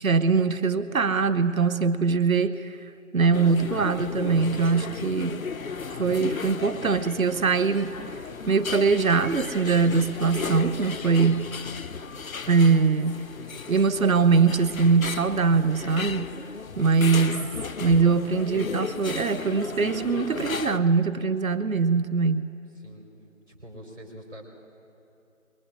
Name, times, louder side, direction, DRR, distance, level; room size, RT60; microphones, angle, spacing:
voice 1, 0.0-2.7 3.1-5.5 6.0-8.0 8.5-11.5 12.5-13.2 13.7-16.3 16.8-17.5 17.8-22.4, right 5 dB, 90° right, 13 dB, 0.7 m, -22 dB
sound 1, 3.3-20.8, left 5 dB, 90° left, 0.7 m, -35 dB
voice 2, 22.8-23.1 23.5-24.5, equal, 60° right, 1 dB, 4.2 m, -44 dB
24.0 x 22.5 x 2.5 m, 2.7 s
figure-of-eight pair, 175°, 40 cm